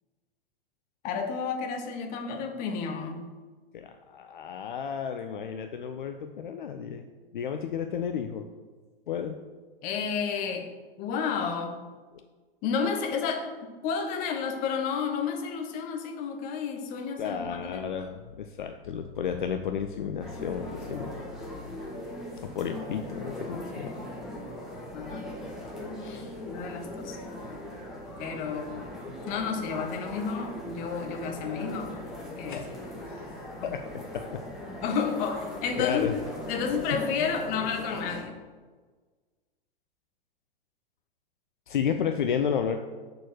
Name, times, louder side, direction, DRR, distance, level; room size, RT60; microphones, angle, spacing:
voice 1, 1.0-3.3 9.8-10.7 11.0-11.9 12.6-17.8 24.9-25.3 26.4-27.2 28.2-28.8 29.3-32.6 33.3-33.7 34.8-36.1 36.5-38.3, left 6 dB, 30° left, 4 dB, 1.0 m, -31 dB
voice 2, 3.7-7.0 7.3-8.5 9.1-9.4 17.2-21.1 22.4-23.9 26.0-26.3 32.5-32.7 33.1-33.2 33.6-34.4 35.8-36.1 41.7-42.8, left 7 dB, 55° left, 6 dB, 0.5 m, -32 dB
sound 1, 20.2-38.2, left 1 dB, ahead, 1.8 m, -39 dB
6.7 x 4.0 x 6.1 m, 1.4 s
figure-of-eight pair, 100°, 29 cm